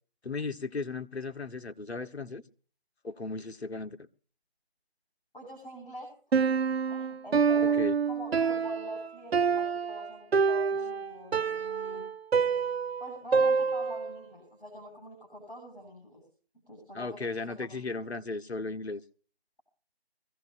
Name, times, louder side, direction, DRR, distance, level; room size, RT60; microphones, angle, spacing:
voice 1, 0.2-2.4 3.0-4.0 7.8-8.0 16.9-19.0, left 3 dB, 80° left, 1.3 m, -36 dB
voice 2, 5.3-6.1 6.5-7.7 8.1-12.1 13.0-16.2 16.7-17.2 17.5-18.0, equal, 55° left, 7.8 m, -45 dB
Piano, 6.3-14.2, right 5 dB, 75° right, 0.6 m, -27 dB
24.5 x 16.0 x 2.7 m
figure-of-eight pair, 175°, 32 cm